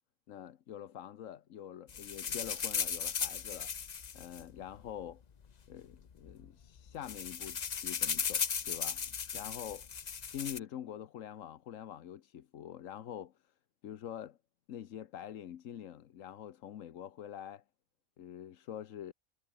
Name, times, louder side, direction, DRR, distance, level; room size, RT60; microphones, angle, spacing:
voice 1, 0.3-3.7 4.1-5.2 5.7-9.9 10.3-13.5 13.8-14.4 14.7-17.6 18.2-19.1, left 10 dB, 75° left, 1.2 m, -45 dB
sound 1, 1.9-5.1 5.9-6.0 6.3-6.5 6.8-10.6, left 7 dB, 40° left, 0.7 m, -36 dB
omnidirectional pair, 1.3 m